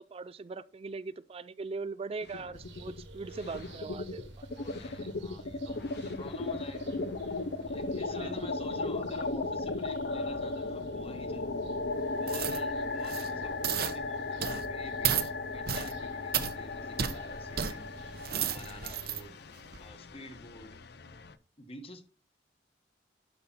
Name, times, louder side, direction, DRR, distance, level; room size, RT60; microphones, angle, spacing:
voice 1, 0.0-4.5 8.1-8.8 13.3-13.6, right 4 dB, 35° right, 0.4 m, -41 dB
sound 1, 2.2-3.0 3.3-21.3, left 3 dB, 65° left, 0.7 m, -36 dB
sound 2, 2.5-19.2, right 1 dB, 85° right, 2.7 m, -50 dB
voice 2, 4.6-6.9 7.6-11.5 12.1-19.3 19.8-20.7 21.6-22.0, left 2 dB, 35° left, 1.4 m, -49 dB
sound 3, 12.3-12.6 13.0-13.3 13.6-14.0 14.4-14.7 15.0-15.3 15.7-15.9 16.3-16.5 17.0-17.2 17.6-17.7 18.1-19.2 19.7-19.8, right 8 dB, 60° right, 0.9 m, -32 dB
12.0 x 5.8 x 4.2 m
head